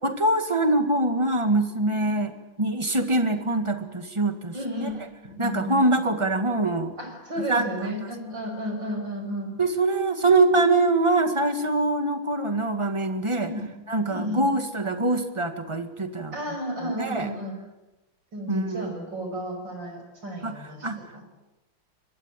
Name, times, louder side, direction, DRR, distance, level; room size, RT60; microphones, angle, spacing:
voice 1, 0.0-4.5 4.8-4.9 5.4-6.9 7.5-7.6 9.6-13.5 13.9-16.3 16.8-17.3 18.5-18.9 20.4-20.6 20.8-21.0, right 2 dB, 15° right, 7 dB, 1.9 m, -24 dB
voice 2, 4.5-5.9 7.0-9.5 13.4-13.7 14.1-14.4 16.3-17.5 18.3-20.9 21.1-21.2, equal, 60° right, 4 dB, 6.7 m, -33 dB
25.5 x 22.0 x 9.0 m, 1.0 s
omnidirectional pair, 2.2 m